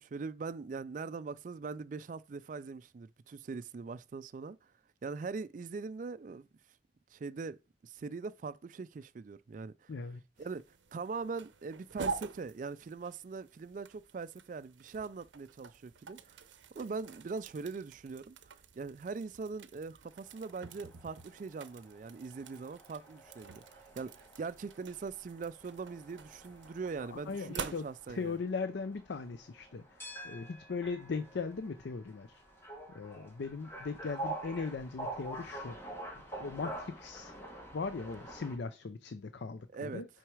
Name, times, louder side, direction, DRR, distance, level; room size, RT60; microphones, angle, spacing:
voice 1, 0.0-4.6 5.0-6.5 7.1-7.6 7.8-9.9 10.4-10.6 10.9-16.4 16.7-18.4 18.8-28.4 39.7-40.0, right 4 dB, 45° right, 0.3 m, -41 dB
voice 2, 9.9-10.2 27.1-32.4 32.9-35.9 36.4-37.3 37.7-40.1, left 4 dB, 70° left, 0.5 m, -39 dB
sound 1, 10.4-28.4, right 4 dB, 85° right, 0.6 m, -47 dB
sound 2, 20.2-38.6, right 1 dB, 15° left, 1.3 m, -47 dB
6.1 x 4.7 x 4.7 m
head